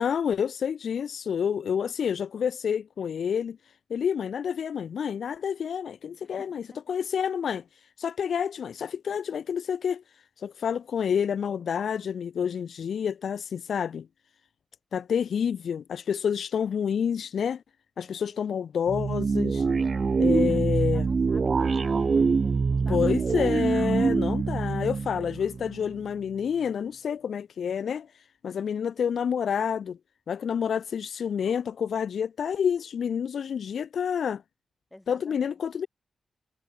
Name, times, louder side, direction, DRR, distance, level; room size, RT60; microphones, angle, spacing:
voice 1, 0.0-3.6 3.9-7.6 8.0-10.0 10.4-14.1 14.9-17.6 18.0-19.6 20.2-21.1 22.9-28.1 28.4-30.0 30.3-34.4 35.1-35.9, left 7 dB, 70° left, 0.5 m, -28 dB
voice 2, 6.4-6.8 18.0-18.4 20.2-24.2 34.9-35.6, left 1 dB, 10° left, 5.1 m, -50 dB
sound 1, 18.9-26.1, right 5 dB, 40° right, 0.6 m, -25 dB
wide cardioid pair, 135°, 0 cm